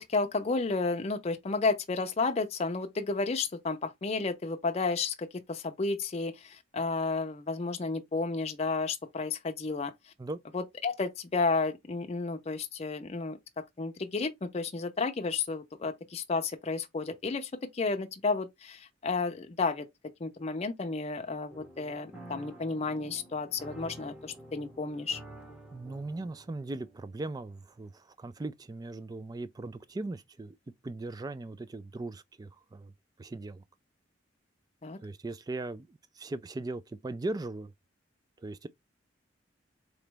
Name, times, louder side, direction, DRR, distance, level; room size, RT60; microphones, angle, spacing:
voice 1, 0.0-9.9 10.5-13.4 13.8-19.9 20.2-25.2 34.8-35.0, left 3 dB, 35° left, 0.5 m, -32 dB
sound 1, 21.5-27.1, right 1 dB, 5° right, 0.9 m, -49 dB
voice 2, 25.7-30.6 30.8-32.9 33.2-33.6 35.0-37.7 38.4-38.7, right 2 dB, 20° right, 0.3 m, -39 dB
3.9 x 3.0 x 3.3 m
head